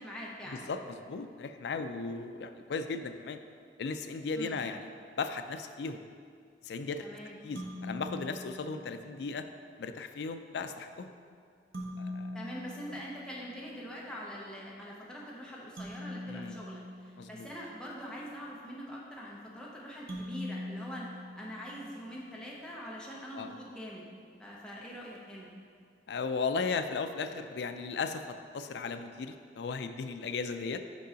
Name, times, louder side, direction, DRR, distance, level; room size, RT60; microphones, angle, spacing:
voice 1, 0.0-0.6 4.4-4.6 7.0-7.4 12.3-21.1 21.4-24.1 24.4-25.5, equal, 5° left, -5 dB, 0.8 m, -44 dB
voice 2, 0.5-3.4 3.8-4.9 5.2-6.0 6.6-7.0 7.4-9.4 9.8-11.1 12.0-12.4 16.3-16.6 17.2-17.5 23.3-23.5 26.1-30.8, left 4 dB, 75° left, 8 dB, 0.4 m, -36 dB
sound 1, 7.5-9.2 11.7-13.8 15.8-17.9 20.1-22.1, left 1 dB, 55° right, 1.0 m, -43 dB
5.3 x 4.6 x 5.0 m, 2.2 s
head